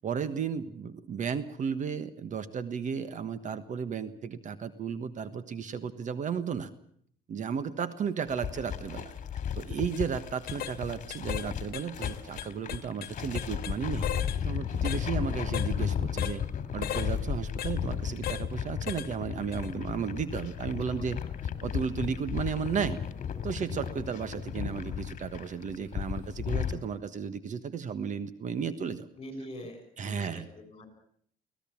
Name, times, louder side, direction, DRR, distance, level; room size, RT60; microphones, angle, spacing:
voice 1, 0.0-6.7 7.3-9.1 9.5-14.1 14.4-16.4 16.7-21.2 21.6-23.0 23.4-29.1 30.0-30.5, right 6 dB, 45° right, 13 dB, 1.4 m, -34 dB
sound 1, 8.3-26.8, left 8 dB, 45° left, 2.8 m, -34 dB
sound 2, 9.8-10.0 10.5-10.8 11.1-11.5 11.7-13.8 14.0-14.4 14.8-15.0 15.5-15.7 16.2-16.4 16.8-17.1 17.6-17.7 18.2-18.4 18.9-19.1 19.5-19.7, left 10 dB, 65° left, 1.3 m, -36 dB
voice 2, 29.1-30.9, left 1 dB, 30° left, 7 dB, 7.1 m, -44 dB
24.5 x 18.0 x 7.3 m, 0.63 s
cardioid pair, 110°, 17 cm